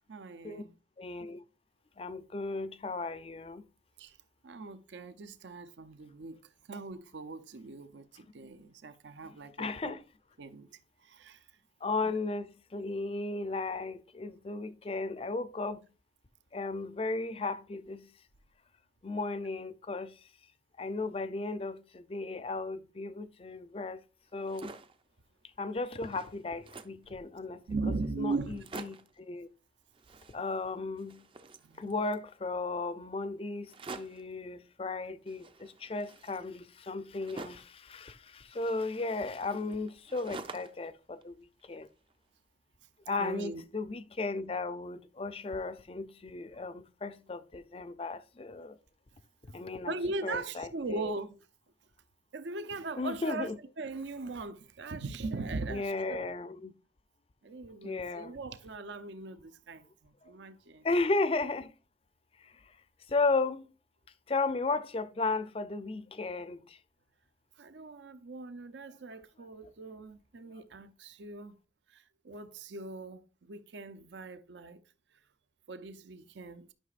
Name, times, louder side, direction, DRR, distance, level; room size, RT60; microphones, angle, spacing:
voice 1, 0.1-0.7 4.0-4.2 4.4-6.4 6.7-10.0 10.4-11.4 12.0-12.1 27.1-27.2 27.7-28.6 31.6-31.9 43.2-43.6 49.5-49.6 49.9-51.4 52.3-53.5 53.8-56.3 57.4-60.9 67.6-71.6 71.9-74.8 75.7-76.7, right 3 dB, 75° right, 0.6 m, -40 dB
voice 2, 1.0-1.4 2.0-3.6 9.6-10.0 11.8-15.8 16.5-18.1 19.0-20.2 20.8-24.0 24.3-24.7 25.6-27.6 28.2-29.5 30.3-31.2 31.8-41.4 41.6-41.9 43.1-48.8 49.5-49.9 50.2-51.1 53.0-53.6 55.7-56.7 57.8-58.3 60.2-60.3 60.8-61.7 62.4-62.5 63.1-63.7 64.3-66.8, left 3 dB, 30° left, 0.5 m, -35 dB
sound 1, 24.3-25.0 25.5-25.6 25.8-27.1 27.7-27.8 28.0-28.1 28.4-29.2 29.9-30.7 31.0-32.3 33.7-34.3 35.3-37.8 38.5-40.9 41.2-42.1, right 3 dB, 30° right, 0.5 m, -48 dB
11.5 x 5.8 x 2.5 m
head